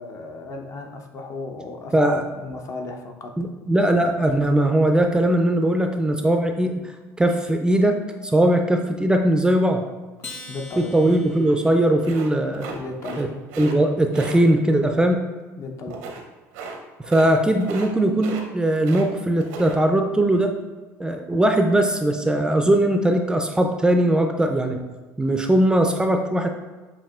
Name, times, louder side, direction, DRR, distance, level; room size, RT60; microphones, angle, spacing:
voice 1, 0.0-3.4 10.5-11.2 12.7-13.3 15.6-16.0, left 3 dB, 45° left, 4 dB, 0.6 m, -35 dB
voice 2, 1.9-2.2 3.4-6.9 7.2-9.8 10.8-12.7 13.2-13.3 13.6-15.2 17.1-20.5 21.0-24.8 25.2-26.5, right 1 dB, 10° right, 4 dB, 0.4 m, -20 dB
Acoustic guitar, 10.2-12.9, left 2 dB, 30° left, 0.9 m, -43 dB
sound 1, 12.0-13.2 13.5-13.7 14.1-14.4 15.9-16.2 16.5-16.8 17.0-17.3 17.6-17.9 18.2-19.1 19.4-19.7, right 3 dB, 85° right, 0.7 m, -35 dB
7.2 x 2.7 x 2.4 m, 1.3 s
supercardioid pair, 95°, 7 cm